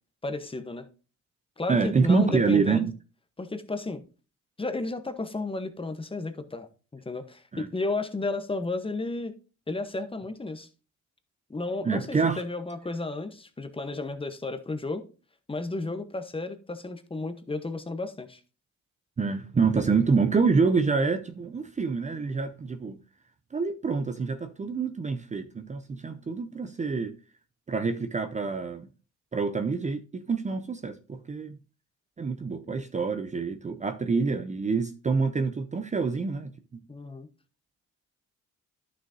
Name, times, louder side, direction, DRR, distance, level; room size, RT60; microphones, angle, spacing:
voice 1, 0.2-0.9 1.6-2.9 3.4-4.0 4.6-9.3 9.7-10.7 11.5-15.1 15.5-18.4 36.9-37.3, left 2 dB, 20° left, 1.0 m, -33 dB
voice 2, 1.7-2.9 7.5-7.7 11.8-12.4 19.2-23.0 23.5-27.2 27.7-28.9 29.3-31.6 32.2-36.8, right 4 dB, 25° right, 0.6 m, -26 dB
11.0 x 6.3 x 2.7 m
cardioid pair, 90°, 30 cm